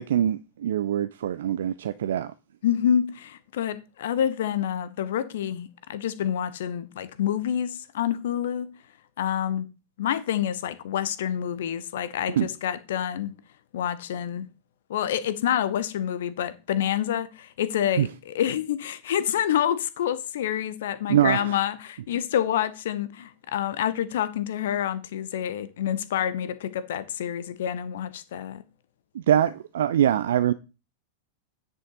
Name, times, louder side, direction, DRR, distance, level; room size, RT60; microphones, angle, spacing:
voice 1, 0.0-2.3 12.3-12.5 18.0-18.1 21.1-21.6 29.1-30.5, right 10 dB, 60° right, 0.3 m, -23 dB
voice 2, 2.6-8.7 9.2-9.7 10.0-13.3 13.7-14.5 14.9-28.6, left 10 dB, 60° left, 0.8 m, -27 dB
9.9 x 5.7 x 3.9 m
figure-of-eight pair, 90°, 0 cm